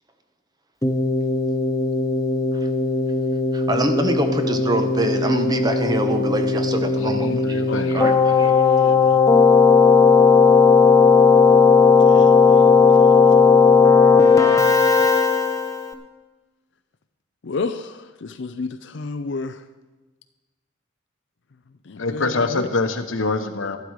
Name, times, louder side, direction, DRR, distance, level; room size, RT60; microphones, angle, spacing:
Keyboard (musical), 0.8-15.9, left 5 dB, 15° left, 0.8 m, -16 dB
voice 1, 3.5-8.6, right 1 dB, 20° right, 7 dB, 0.9 m, -25 dB
voice 2, 7.0-8.1 22.0-23.8, left 3 dB, 80° left, 8 dB, 1.1 m, -25 dB
voice 3, 8.4-9.2 12.0-12.8 17.4-19.6 21.9-22.7, left 4 dB, 60° left, 10 dB, 0.5 m, -31 dB
13.0 x 11.5 x 4.8 m, 1.2 s
head